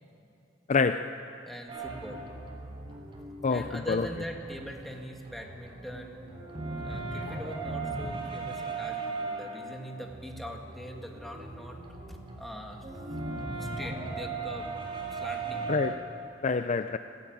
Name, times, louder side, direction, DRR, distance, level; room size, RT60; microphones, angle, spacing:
voice 1, 0.7-1.2 3.4-4.1 15.7-16.0 16.4-17.0, left 4 dB, 40° left, 9 dB, 0.5 m, -27 dB
voice 2, 1.5-2.2 3.5-6.2 6.8-11.8 12.1-13.3 13.6-15.7, equal, ahead, 1 dB, 2.3 m, -42 dB
sound 1, 1.7-4.9 5.2-15.9, right 3 dB, 30° right, 3.4 m, -38 dB
29.0 x 13.0 x 9.2 m, 2.7 s
head